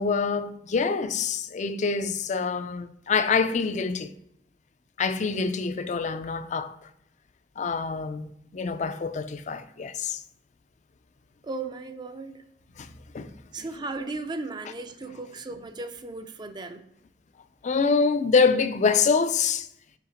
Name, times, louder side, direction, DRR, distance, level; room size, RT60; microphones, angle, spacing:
voice 1, 0.0-4.1 5.0-6.7 7.6-10.2 12.8-12.9 13.1-13.3 13.6-13.7 17.6-19.7, left 5 dB, 45° left, 0.4 m, -25 dB
voice 2, 11.4-12.4 13.5-16.8, right 3 dB, 25° right, 0.4 m, -36 dB
5.9 x 4.8 x 4.9 m
head